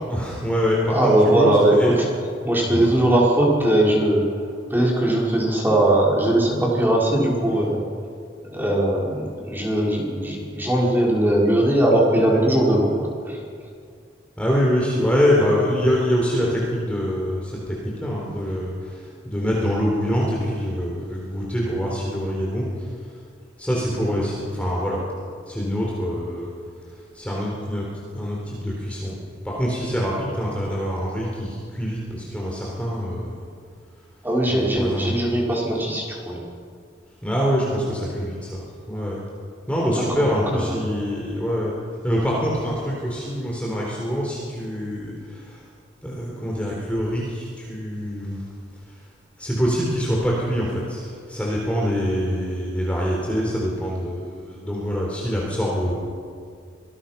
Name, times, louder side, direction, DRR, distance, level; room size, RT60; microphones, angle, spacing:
voice 1, 0.1-1.9 2.7-2.9 14.4-22.9 23.6-25.0 25.5-26.5 27.1-27.9 28.1-29.2 29.4-33.4 34.5-35.1 37.2-38.6 38.9-39.2 39.7-41.7 42.0-45.6 46.0-48.4 49.4-55.9, equal, 5° left, -4 dB, 3.8 m, -25 dB
voice 2, 0.9-1.8 2.4-4.2 4.7-7.8 8.5-13.4 34.2-36.4 40.2-40.3 40.5-40.8, right 1 dB, 10° right, -3 dB, 5.0 m, -20 dB
26.0 x 19.0 x 5.9 m, 2.1 s
head